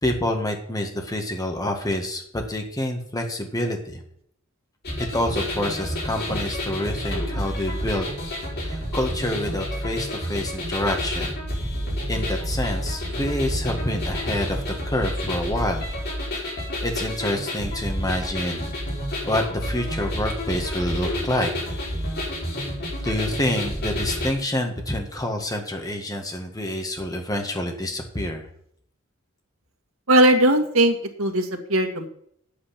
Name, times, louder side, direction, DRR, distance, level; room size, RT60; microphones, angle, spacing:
voice 1, 0.0-4.0 5.0-8.1 8.6-11.3 12.1-15.9 16.8-18.7 19.3-21.9 23.0-28.5, left 1 dB, 20° left, 3 dB, 1.8 m, -27 dB
sound 1, 4.8-24.3, equal, 50° left, 5.0 m, -29 dB
voice 2, 30.1-32.1, right 1 dB, 85° right, 5 dB, 1.8 m, -19 dB
9.6 x 8.6 x 5.9 m, 0.66 s
head